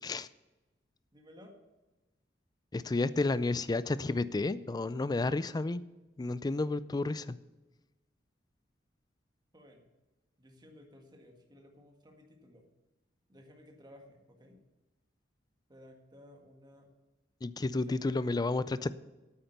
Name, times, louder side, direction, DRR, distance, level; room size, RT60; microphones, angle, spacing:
voice 1, 1.1-1.6 9.5-9.9 10.4-12.7 13.3-14.6 15.7-16.9 17.6-18.9, left 1 dB, 25° right, 2 dB, 1.7 m, -56 dB
voice 2, 2.7-5.8 6.2-7.4 17.4-18.9, left 2 dB, 20° left, 16 dB, 0.4 m, -31 dB
9.2 x 8.7 x 6.7 m, 1.1 s
head